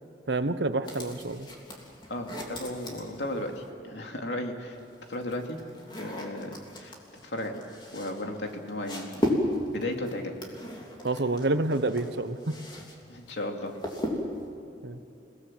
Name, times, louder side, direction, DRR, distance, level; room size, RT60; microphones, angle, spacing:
voice 1, 0.3-1.5 11.0-12.5 14.8-15.0, right 2 dB, 70° right, 11 dB, 1.0 m, -28 dB
sound 1, 0.8-3.7 4.7-13.0 13.2-14.5, left 1 dB, 25° left, 3.3 m, -36 dB
voice 2, 2.1-4.8 5.1-5.6 6.0-6.9 7.2-7.6 7.9-9.2 9.7-10.3 13.1-13.7, left 1 dB, 85° left, 3 dB, 2.6 m, -35 dB
29.0 x 18.0 x 7.6 m, 2.7 s
head